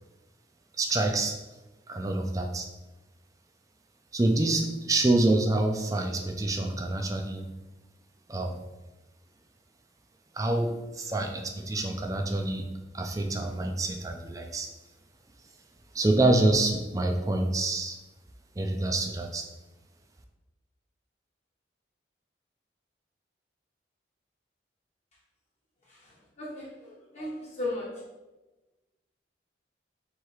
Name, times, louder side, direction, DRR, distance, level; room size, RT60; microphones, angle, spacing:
voice 1, 0.8-1.3 1.9-2.7 4.1-7.4 8.3-8.6 10.3-12.6 12.9-14.7 15.9-18.0 18.6-19.4, right 2 dB, 20° right, 3 dB, 0.4 m, -26 dB
voice 2, 25.9-27.9, left 2 dB, 35° left, -6 dB, 0.9 m, -36 dB
3.3 x 3.1 x 4.8 m, 1.1 s
head